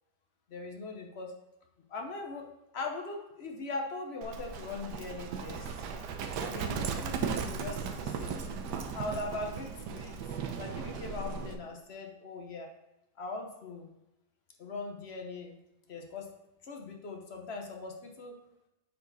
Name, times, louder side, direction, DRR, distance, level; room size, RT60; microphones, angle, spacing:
voice 1, 0.5-1.3 1.9-2.5 2.7-5.7 6.4-8.3 8.9-10.2 10.6-12.7 13.2-13.9 14.6-15.5 15.9-16.3 16.6-18.4, left 3 dB, 50° left, 2 dB, 0.7 m, -40 dB
Livestock farm animals working animals, 4.2-11.6, right 6 dB, 65° right, 1.2 m, -36 dB
8.3 x 4.6 x 4.0 m, 0.93 s
omnidirectional pair, 2.1 m